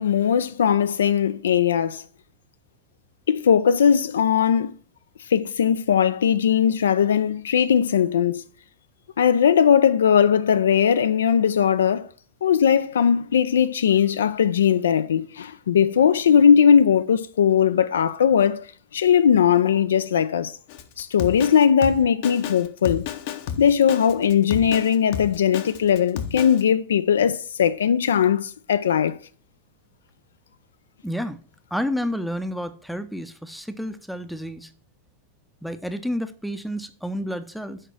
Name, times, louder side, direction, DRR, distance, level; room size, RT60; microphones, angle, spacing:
voice 1, 0.0-2.0 3.3-4.7 5.3-8.4 9.2-12.1 12.4-18.7 18.9-20.5 21.0-23.0 23.6-29.2, left 8 dB, 65° left, 0.4 m, -19 dB
Drum kit, 20.7-26.6, left 9 dB, 50° left, 0.8 m, -32 dB
voice 2, 31.0-31.4 31.7-34.7 35.6-37.8, equal, ahead, 0.6 m, -30 dB
6.6 x 4.9 x 5.8 m
figure-of-eight pair, 90°, 0 cm